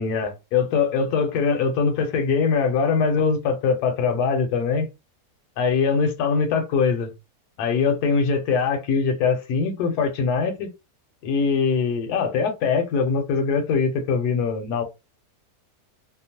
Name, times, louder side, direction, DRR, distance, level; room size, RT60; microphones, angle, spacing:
voice 1, 0.0-4.9 5.6-7.1 7.6-10.7 11.2-14.8, left 5 dB, 75° left, 1.1 m, -22 dB
2.9 x 2.0 x 2.7 m
omnidirectional pair, 1.8 m